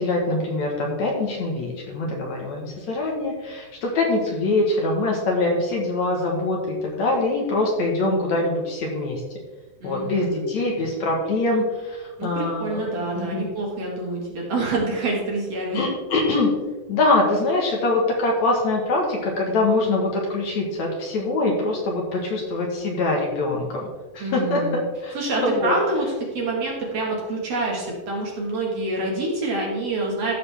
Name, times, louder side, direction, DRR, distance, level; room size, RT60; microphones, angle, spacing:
voice 1, 0.0-9.2 9.8-13.5 15.7-16.5 16.9-23.9 24.1-25.1 25.4-25.8, left 2 dB, 60° left, -1 dB, 2.3 m, -23 dB
voice 2, 9.8-10.5 12.2-15.8 24.2-24.8 25.1-30.3, right 2 dB, 50° right, -2 dB, 2.5 m, -27 dB
14.0 x 6.7 x 3.4 m, 1.3 s
omnidirectional pair, 4.1 m